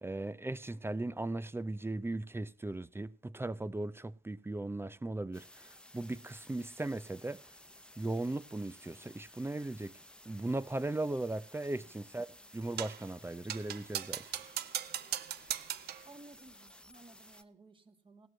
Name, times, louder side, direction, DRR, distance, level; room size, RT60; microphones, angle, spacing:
voice 1, 0.0-7.4 8.0-9.9 10.3-12.3 12.5-14.2, right 2 dB, 15° right, 0.6 m, -37 dB
sound 1, 5.3-17.4, left 1 dB, 5° left, 1.1 m, -56 dB
sound 2, 12.8-13.1 13.5-16.1, right 11 dB, 65° right, 0.8 m, -39 dB
voice 2, 16.1-18.3, right 3 dB, 30° right, 2.2 m, -57 dB
16.0 x 7.4 x 7.7 m
supercardioid pair, 65°, 18 cm